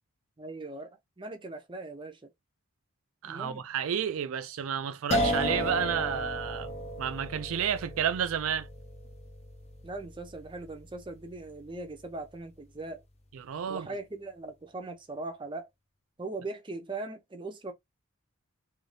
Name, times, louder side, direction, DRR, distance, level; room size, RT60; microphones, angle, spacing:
voice 1, 0.4-2.3 3.2-3.6 9.8-13.0 13.7-15.7 16.2-17.7, right 2 dB, 25° right, 0.6 m, -40 dB
voice 2, 3.2-8.7 13.3-13.9, right 8 dB, 80° right, 0.4 m, -31 dB
sound 1, 5.1-12.0, equal, 30° left, 0.8 m, -34 dB
2.7 x 2.6 x 3.2 m
head